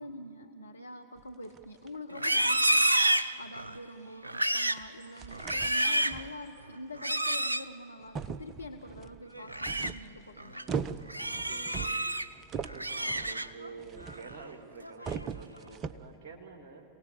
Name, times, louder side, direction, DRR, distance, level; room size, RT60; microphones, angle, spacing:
voice 1, 0.0-10.6, left 1 dB, 80° left, 6 dB, 0.7 m, -45 dB
sound 1, 1.2-2.0 2.5-2.6 3.0-3.2 3.6-3.7 4.8-4.9 5.2-6.5 7.4-7.5 8.0-14.5 14.8-16.1, right 6 dB, 30° right, 0.7 m, -40 dB
Livestock farm animals working animals, 2.1-3.8 4.2-4.9 5.3-6.2 7.0-7.7 9.3-9.9 10.4-10.6 11.1-12.3 12.6-13.7 14.1-14.4 14.8-15.3, right 1 dB, 85° right, 0.5 m, -29 dB
voice 2, 10.4-10.9 11.2-12.0 12.5-16.8, right 4 dB, 45° right, 1 dB, 2.6 m, -49 dB
28.0 x 17.5 x 8.4 m, 2.7 s
figure-of-eight pair, 90°, 0 cm